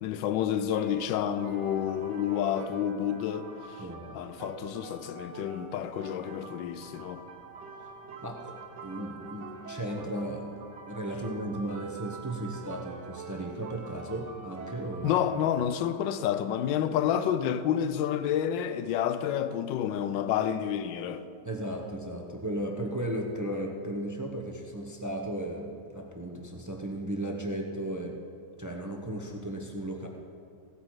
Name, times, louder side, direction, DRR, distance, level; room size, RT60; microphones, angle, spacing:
voice 1, 0.0-3.5 4.1-7.2 15.0-21.2, left 9 dB, 85° left, 1.3 m, -29 dB
sound 1, 0.6-15.5, right 4 dB, 75° right, 1.6 m, -45 dB
voice 2, 8.2-8.5 8.8-10.6 10.9-15.2 21.4-28.2 28.6-30.1, right 1 dB, 25° right, 0.4 m, -35 dB
16.0 x 8.5 x 4.7 m
omnidirectional pair, 2.0 m